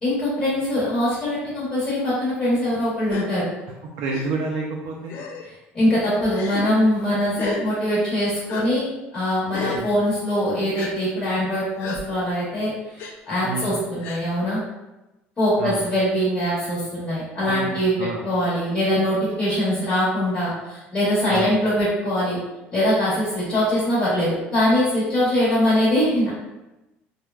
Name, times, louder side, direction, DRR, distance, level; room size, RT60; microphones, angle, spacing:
voice 1, 0.0-3.4 5.7-14.6 15.4-22.4 22.7-26.3, equal, 20° left, -10 dB, 1.1 m, -22 dB
Gasp, 3.1-3.3 4.1-4.2 5.1-5.5 6.3-6.6 7.4-7.6 8.5-8.6 9.5-9.8 10.8-10.9 11.8-12.0 13.0-13.1 14.0-14.2, left 5 dB, 55° left, 0.4 m, -32 dB
voice 2, 4.0-5.1 9.6-9.9 13.4-13.7 15.6-15.8 17.4-18.2 21.3-21.5, right 4 dB, 65° right, -1 dB, 0.4 m, -29 dB
3.1 x 2.1 x 2.3 m, 0.99 s
cardioid pair, 170°, 5 cm